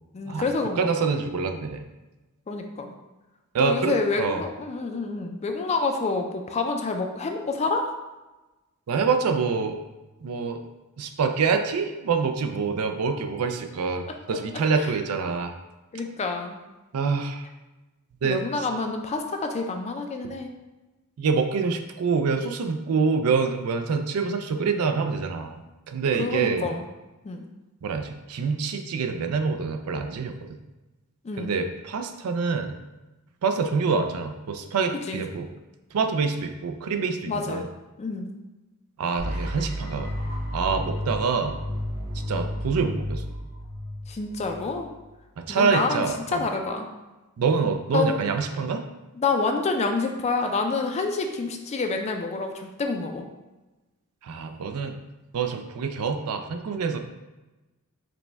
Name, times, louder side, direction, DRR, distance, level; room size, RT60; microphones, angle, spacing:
voice 1, 0.1-0.9 2.5-2.9 3.6-7.9 14.8-14.9 15.9-16.6 18.2-20.5 26.2-26.8 27.2-27.4 31.2-31.6 35.1-35.2 37.3-37.6 38.0-38.3 44.1-44.9 45.5-46.9 47.9-48.2 49.2-53.3, left 3 dB, 30° left, 4 dB, 0.4 m, -28 dB
voice 2, 0.8-1.8 3.5-4.4 8.9-9.8 10.2-10.6 11.0-15.6 16.9-17.5 18.2-18.4 20.2-20.3 21.2-25.6 25.9-26.7 27.8-30.6 31.4-32.8 33.4-35.5 35.9-37.7 39.0-40.1 40.5-41.6 42.3-43.2 45.4-46.5 47.4-48.8 54.2-55.0 55.3-57.0, right 5 dB, 75° right, 6 dB, 0.4 m, -26 dB
sound 1, 39.2-45.1, equal, 40° right, 0.9 m, -32 dB
4.9 x 2.2 x 3.3 m, 1.1 s
head